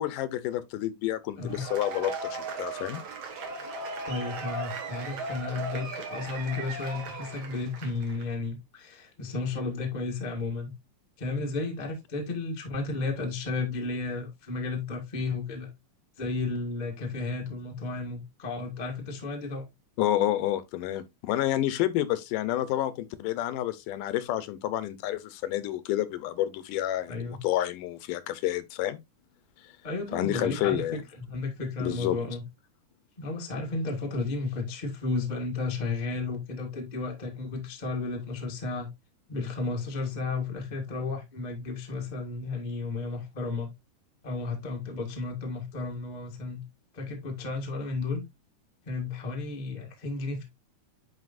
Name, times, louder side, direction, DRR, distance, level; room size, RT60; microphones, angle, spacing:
voice 1, 0.0-3.0 20.0-29.0 30.1-31.0 31.8-32.2, left 13 dB, 80° left, 2.2 m, -29 dB
Cheering / Applause / Crowd, 1.4-8.2, right 3 dB, 55° right, 2.3 m, -37 dB
voice 2, 4.1-10.7 11.2-15.7 16.2-19.6 27.1-27.4 29.8-32.4 33.2-38.9 39.3-43.7 44.2-46.6 46.9-48.2 48.8-50.4, left 3 dB, 45° left, 0.5 m, -33 dB
9.7 x 4.6 x 2.5 m
omnidirectional pair, 3.8 m